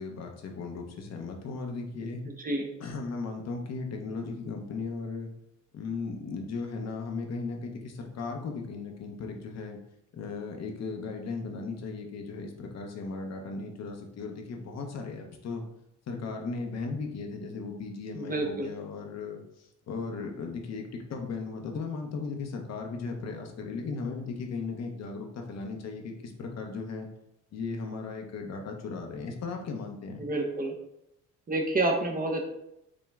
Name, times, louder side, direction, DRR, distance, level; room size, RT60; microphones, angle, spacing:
voice 1, 0.0-2.2 2.8-5.3 5.7-9.8 10.1-15.6 16.1-27.1 27.5-30.2, left 4 dB, 60° left, 3 dB, 0.8 m, -36 dB
voice 2, 2.2-2.7 18.1-18.7 30.2-30.7 31.5-32.4, right 2 dB, 30° right, 2 dB, 0.8 m, -29 dB
5.1 x 2.2 x 3.5 m, 0.81 s
cardioid pair, 90°, 30 cm